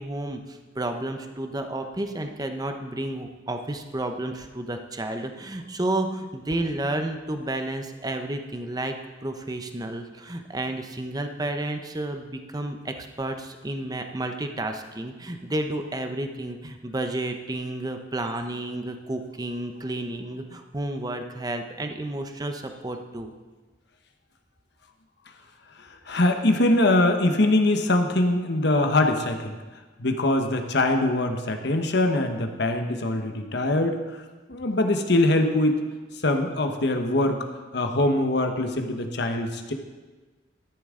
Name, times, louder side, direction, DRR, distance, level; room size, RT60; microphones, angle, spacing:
voice 1, 0.0-8.9 9.2-23.3, right 1 dB, 20° right, 6 dB, 0.8 m, -31 dB
voice 2, 25.8-29.6 30.0-34.2 34.5-35.8 36.2-37.5 37.7-39.7, left 2 dB, 60° left, 5 dB, 1.1 m, -23 dB
13.0 x 11.0 x 3.8 m, 1.3 s
head